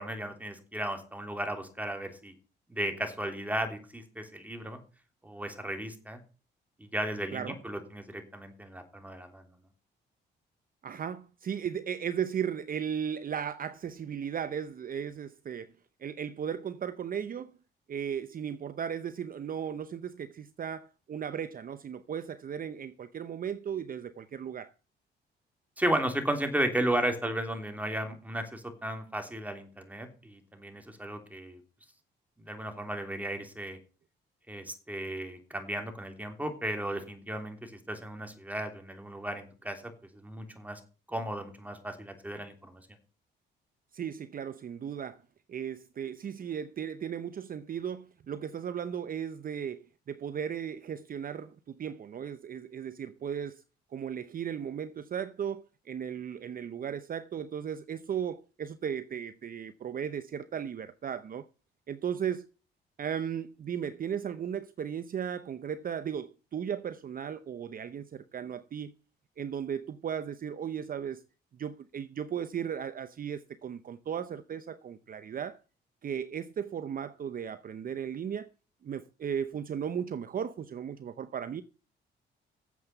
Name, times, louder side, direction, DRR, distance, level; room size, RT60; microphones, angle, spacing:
voice 1, 0.0-2.3 2.7-4.8 5.2-6.2 6.8-9.5 25.8-31.6 32.4-33.8 34.5-39.9 40.2-40.8 41.1-42.8, right 1 dB, 10° right, 3.2 m, -34 dB
voice 2, 10.8-15.7 16.0-17.5 17.9-24.7 43.9-45.2 45.5-53.6 53.9-61.5 61.9-62.5 63.0-68.9 69.4-71.2 71.6-75.6 76.0-78.5 78.8-81.6, right 8 dB, 45° right, 0.7 m, -36 dB
9.4 x 7.8 x 6.8 m
cardioid pair, 90°, 20 cm